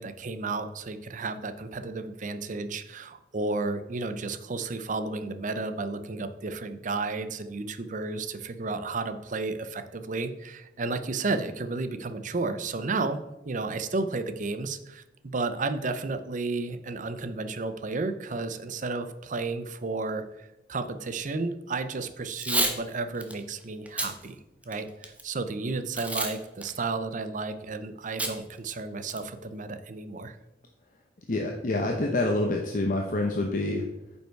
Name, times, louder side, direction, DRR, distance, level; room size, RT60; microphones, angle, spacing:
voice 1, 0.0-13.2 13.5-15.0 15.3-24.4 24.7-30.4, right 3 dB, 45° right, 10 dB, 0.6 m, -32 dB
Packing tape duct tape / Tearing, 22.3-22.8 23.2-23.3 23.9-24.1 24.6-25.2 26.0-26.3 26.6-26.7 28.2-28.3 28.7-28.8 29.1-29.4, right 2 dB, 10° right, 0.9 m, -28 dB
voice 2, 31.3-33.8, left 2 dB, 50° left, 1 dB, 0.8 m, -27 dB
9.1 x 5.5 x 4.6 m, 0.98 s
head